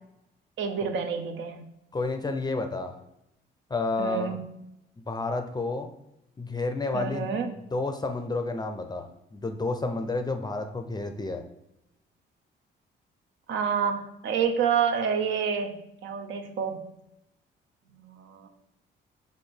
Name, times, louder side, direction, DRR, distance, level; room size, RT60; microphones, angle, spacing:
voice 1, 0.6-1.7 4.0-4.4 6.9-7.5 13.5-16.9 18.0-18.5, right 6 dB, 75° right, 6 dB, 0.7 m, -28 dB
voice 2, 1.9-3.0 3.7-4.4 5.1-5.9 6.4-7.3 7.7-11.4, left 3 dB, 20° left, 6 dB, 0.5 m, -30 dB
4.6 x 2.6 x 4.3 m, 0.87 s
cardioid pair, 90°, 20 cm